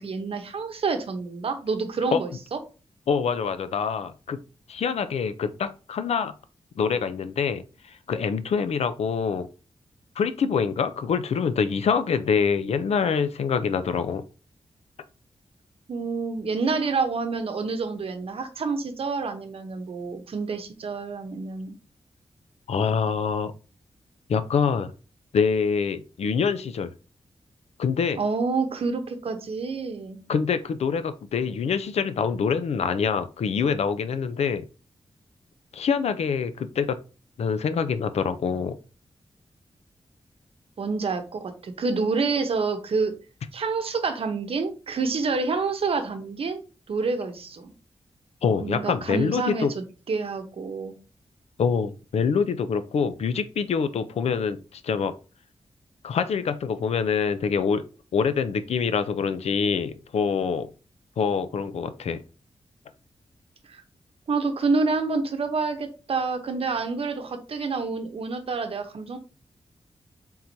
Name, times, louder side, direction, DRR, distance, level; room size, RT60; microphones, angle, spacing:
voice 1, 0.0-2.3 15.9-21.8 28.2-30.2 40.8-43.1 43.5-46.6 46.9-47.7 48.6-49.7 50.1-51.0 63.7-63.8 64.3-69.2, right 4 dB, 65° right, 7 dB, 0.8 m, -28 dB
voice 2, 3.1-4.4 4.7-6.3 6.8-7.6 7.9-9.5 10.2-14.2 22.7-23.5 24.3-24.9 25.3-26.9 27.8-28.2 30.3-34.7 35.7-37.0 37.4-38.8 48.4-49.7 51.6-55.1 56.0-57.8 58.1-60.7 61.2-62.2, left 6 dB, 90° left, 11 dB, 0.5 m, -25 dB
4.4 x 3.7 x 2.7 m, 0.34 s
wide cardioid pair, 125°, 11 cm